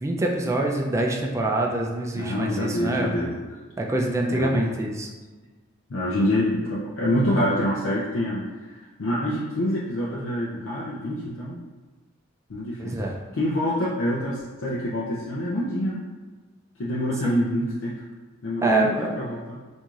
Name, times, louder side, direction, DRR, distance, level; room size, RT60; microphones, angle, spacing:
voice 1, 0.0-3.1 3.8-5.1 12.8-13.2 17.2-17.4 17.6-17.7 18.6-19.2, right 1 dB, 15° right, 0 dB, 0.3 m, -25 dB
voice 2, 2.1-3.4 4.3-4.7 5.9-8.5 9.0-11.6 12.5-12.9 13.4-16.0 16.8-17.9 18.4-19.6, left 1 dB, 75° left, -6 dB, 0.5 m, -26 dB
4.5 x 2.7 x 2.4 m, 1.3 s
head